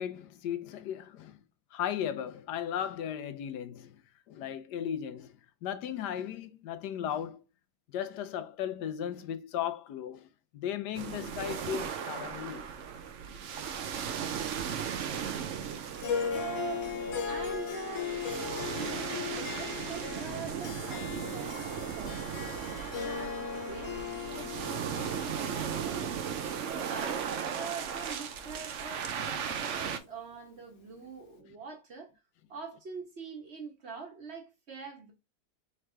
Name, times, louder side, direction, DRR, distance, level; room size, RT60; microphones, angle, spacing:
voice 1, 0.0-1.4 1.7-4.0 4.3-7.4 7.9-12.6 13.2-13.4 14.2-14.4 15.7-15.9, left 9 dB, 85° left, 1.3 m, -36 dB
sound 1, 10.9-30.0, right 8 dB, 60° right, 0.8 m, -37 dB
Harp, 16.0-28.5, left 6 dB, 65° left, 1.2 m, -38 dB
voice 2, 16.3-32.1 32.5-35.1, right 5 dB, 45° right, 1.4 m, -44 dB
3.6 x 3.3 x 4.4 m
omnidirectional pair, 1.7 m